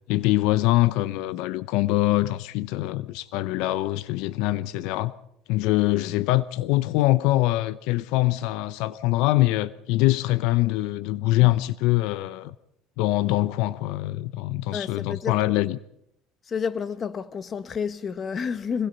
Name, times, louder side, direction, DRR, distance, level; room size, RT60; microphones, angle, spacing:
voice 1, 0.1-5.1 5.5-12.5 13.0-15.8, left 17 dB, 75° left, 0.7 m, -23 dB
voice 2, 14.7-15.4 16.5-18.9, left 6 dB, 30° left, 1.2 m, -30 dB
25.0 x 20.5 x 5.5 m
cardioid pair, 130°, 0 cm